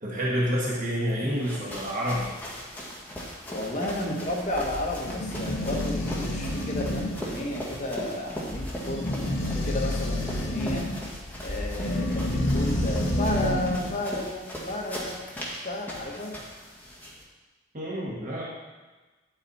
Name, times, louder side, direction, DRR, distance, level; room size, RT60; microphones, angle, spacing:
voice 1, 0.0-2.3 4.1-4.2 17.7-18.5, equal, 45° right, -4 dB, 1.5 m, -28 dB
sound 1, 1.2-17.2, equal, 10° left, 1.7 m, -39 dB
voice 2, 3.5-10.9 11.4-15.2 15.6-16.4, left 1 dB, 40° left, -2 dB, 1.5 m, -33 dB
sound 2, 4.3-14.0, left 1 dB, 85° left, 2.0 m, -30 dB
10.5 x 7.9 x 4.2 m, 1.3 s
head